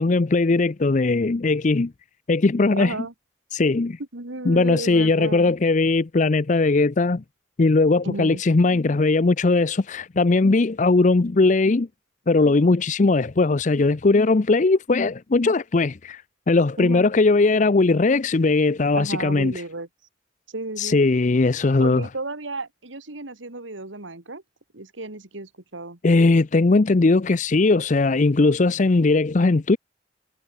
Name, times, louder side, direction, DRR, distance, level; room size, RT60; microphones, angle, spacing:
voice 1, 0.0-1.9 2.3-3.0 3.5-4.0 4.5-7.2 7.6-11.9 12.3-19.5 20.8-22.1 26.0-29.8, left 3 dB, 40° left, 0.5 m, -19 dB
voice 2, 2.8-3.1 4.1-5.5 8.0-8.4 16.8-17.1 18.9-19.9 20.5-21.0 21.8-24.4 24.7-26.0, right 2 dB, 90° right, 2.6 m, -33 dB
head